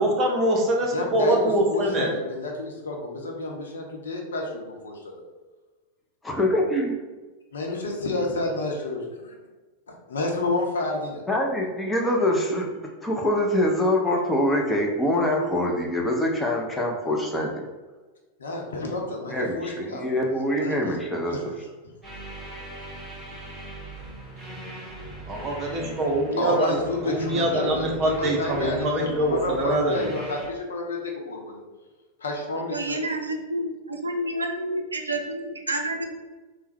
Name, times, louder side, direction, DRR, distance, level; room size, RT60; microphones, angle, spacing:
voice 1, 0.0-2.1 25.3-30.1, right 1 dB, 30° right, 0 dB, 0.8 m, -24 dB
voice 2, 0.8-5.2 7.5-9.3 10.1-11.2 18.4-20.1 20.6-21.0 21.3-21.4 26.4-31.0 31.3-31.6 32.2-33.0, left 2 dB, 65° left, 0 dB, 0.8 m, -30 dB
voice 3, 6.2-6.9 11.3-17.6 19.3-21.5, left 1 dB, 10° left, -1 dB, 0.7 m, -24 dB
sound 1, 22.0-30.5, right 1 dB, 10° right, 1.2 m, -40 dB
voice 4, 32.5-36.1, right 1 dB, 75° right, 3 dB, 0.5 m, -29 dB
3.6 x 2.2 x 4.3 m, 1.3 s
figure-of-eight pair, 90°, 0 cm